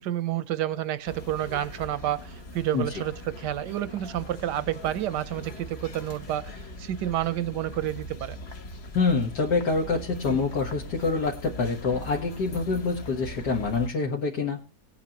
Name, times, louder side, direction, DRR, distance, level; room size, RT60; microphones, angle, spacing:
voice 1, 0.0-8.4, right 12 dB, 90° right, 1.4 m, -30 dB
sound 1, 1.1-13.9, left 1 dB, 45° left, 1.2 m, -41 dB
voice 2, 8.9-14.6, left 4 dB, 75° left, 2.1 m, -26 dB
19.5 x 8.5 x 3.0 m
omnidirectional pair, 1.8 m